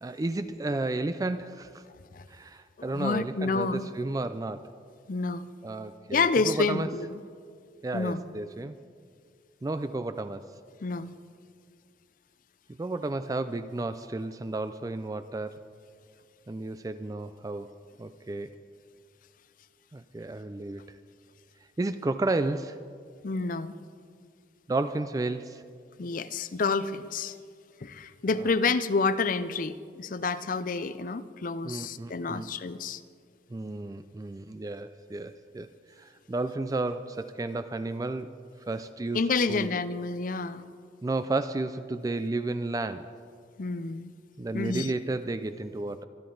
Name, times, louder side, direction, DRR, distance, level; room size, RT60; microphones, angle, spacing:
voice 1, 0.0-1.8 2.3-4.7 5.6-6.9 7.8-8.8 9.6-10.4 12.8-15.6 16.5-18.6 19.9-20.8 21.8-22.8 24.7-25.6 28.4-28.5 31.6-32.5 33.5-35.7 36.0-38.3 38.7-39.2 39.5-39.7 41.0-43.1 44.4-46.0, right 2 dB, 20° right, 12 dB, 0.3 m, -32 dB
voice 2, 2.8-3.9 5.1-5.5 6.1-7.2 7.9-8.2 10.8-11.1 23.2-23.7 26.0-27.3 27.8-33.0 39.1-40.6 43.6-44.1 44.5-44.9, left 4 dB, 45° left, 13 dB, 0.5 m, -29 dB
25.5 x 10.5 x 3.9 m, 2.2 s
head